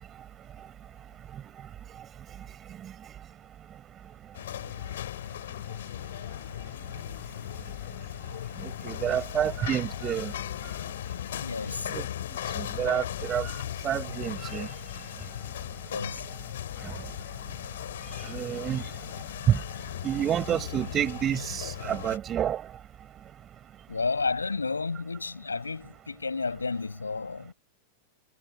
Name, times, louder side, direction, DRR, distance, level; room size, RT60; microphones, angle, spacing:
sound 1, 4.3-22.2, left 11 dB, 60° left, 6.5 m, -37 dB
voice 1, 8.6-10.3 11.9-12.1 12.6-13.5 13.8-14.7 18.2-18.8 19.5-19.6 20.0-22.6, right 10 dB, 30° right, 7.0 m, -28 dB
voice 2, 11.4-11.9 15.9-16.3 23.9-27.5, left 4 dB, 80° left, 7.6 m, -31 dB
figure-of-eight pair, 90°, 0 cm